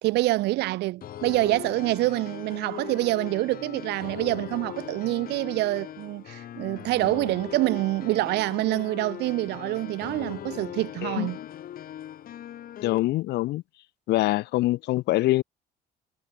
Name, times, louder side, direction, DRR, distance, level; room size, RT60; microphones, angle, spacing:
voice 1, 0.0-11.4, right 18 dB, 85° right, 2.7 m, -26 dB
sound 1, 1.0-13.0, left 11 dB, 60° left, 5.3 m, -39 dB
voice 2, 12.8-13.6 14.1-15.4, left 17 dB, 80° left, 2.3 m, -24 dB
cardioid pair, 110°, 17 cm